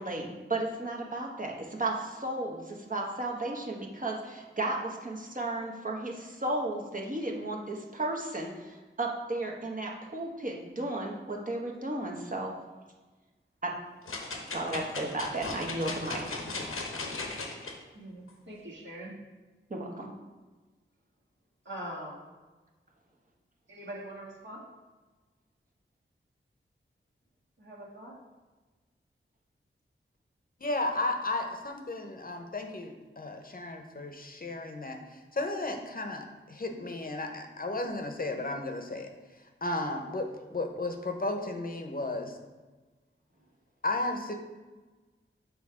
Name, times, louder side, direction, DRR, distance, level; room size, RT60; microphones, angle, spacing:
voice 1, 0.0-12.6 13.6-13.7 14.5-16.4 19.7-20.1, right 2 dB, 40° right, -1 dB, 1.1 m, -34 dB
sound 1, 14.1-17.7 18.3-18.4, left 3 dB, 85° left, 0.9 m, -37 dB
voice 2, 17.9-19.1 21.6-22.3 23.7-24.6 27.6-28.2, right 1 dB, 60° right, -5 dB, 1.8 m, -42 dB
voice 3, 30.6-39.1 39.6-42.4 43.8-44.3, left 2 dB, 45° left, 4 dB, 0.8 m, -34 dB
6.1 x 3.3 x 4.9 m, 1.3 s
cardioid pair, 50°, 21 cm